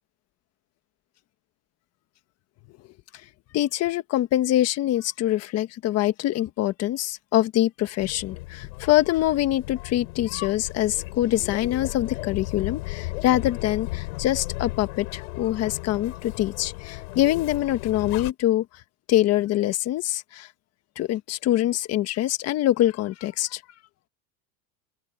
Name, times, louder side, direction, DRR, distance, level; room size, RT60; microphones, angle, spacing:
voice 1, 3.5-18.6 19.1-20.5 21.0-23.6, left 14 dB, 35° left, 1.5 m, -24 dB
sound 1, 8.0-18.3, left 21 dB, 85° left, 7.2 m, -35 dB
open air
cardioid pair, 160°, 42 cm